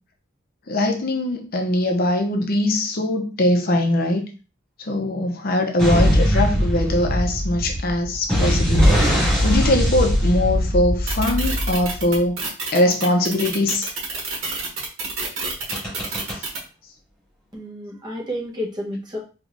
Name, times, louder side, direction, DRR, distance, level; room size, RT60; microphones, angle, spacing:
voice 1, 0.7-4.2 4.8-8.9 9.4-12.4 12.7-13.9, left 1 dB, 45° left, 4 dB, 0.6 m, -21 dB
sound 1, 5.8-12.2 15.7-16.4, equal, 5° left, 2.1 m, -20 dB
sound 2, 11.1-16.6, right 4 dB, 85° right, 1.5 m, -28 dB
voice 2, 17.5-19.2, equal, 20° right, -3 dB, 1.1 m, -30 dB
4.8 x 3.0 x 2.6 m, 0.34 s
head